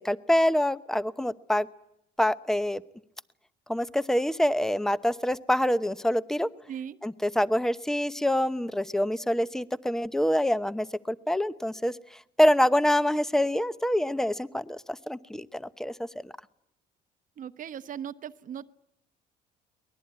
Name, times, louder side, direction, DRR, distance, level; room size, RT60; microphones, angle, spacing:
voice 1, 0.0-1.7 2.2-2.8 3.7-6.5 7.0-12.0 12.4-15.9 16.2-16.3, equal, 5° left, 14 dB, 0.9 m, -26 dB
voice 2, 17.4-18.7, right 9 dB, 50° right, 12 dB, 0.9 m, -38 dB
23.5 x 20.0 x 9.5 m, 0.81 s
cardioid pair, 110°, 17 cm